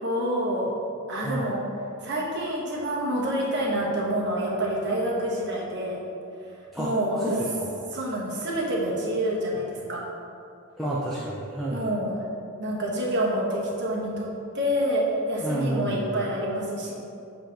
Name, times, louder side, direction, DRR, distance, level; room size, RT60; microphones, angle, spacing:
voice 1, 0.0-0.8 1.1-1.6 2.0-6.0 6.8-7.2 7.9-10.0 11.7-12.2 12.6-14.3 14.5-16.9, right 1 dB, 50° right, -4 dB, 1.2 m, -27 dB
voice 2, 7.2-7.8 10.8-11.8 15.4-16.1, right 1 dB, ahead, -7 dB, 0.5 m, -29 dB
7.3 x 3.0 x 5.1 m, 2.6 s
head